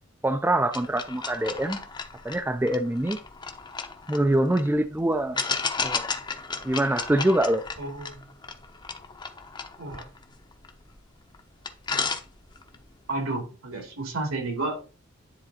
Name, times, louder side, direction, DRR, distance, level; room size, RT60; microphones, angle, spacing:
voice 1, 0.2-1.8 2.2-3.2 4.1-5.4 5.8-6.1 6.6-7.6, right 1 dB, 10° right, 0.3 m, -24 dB
sound 1, 0.7-4.7 5.4-11.0 11.3-11.4 11.7-12.8, left 5 dB, 20° left, 0.7 m, -33 dB
voice 2, 7.8-8.2 9.8-10.0 13.1-14.8, right 2 dB, 80° right, 2.7 m, -31 dB
10.0 x 3.9 x 4.1 m
head